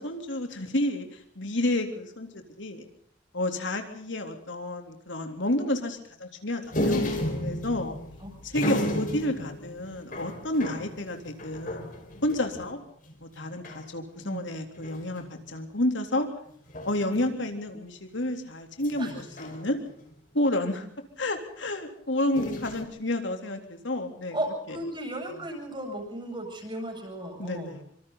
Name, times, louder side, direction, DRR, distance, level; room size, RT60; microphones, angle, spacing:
voice 1, 0.0-2.8 3.3-7.1 7.4-8.0 8.5-11.9 12.2-12.8 13.2-16.3 16.8-19.8 20.3-20.9 21.2-24.4 27.4-27.8, left 1 dB, 80° left, 5 dB, 3.5 m, -30 dB
sound 1, 6.7-12.7 13.1-13.2 13.4-13.9 14.8-15.3 16.7-17.2 18.8-20.1 22.3-22.8, equal, 45° left, 4.4 m, -33 dB
voice 2, 24.3-27.8, right 1 dB, 25° right, 4 dB, 8.0 m, -35 dB
25.5 x 25.5 x 4.1 m, 0.66 s
head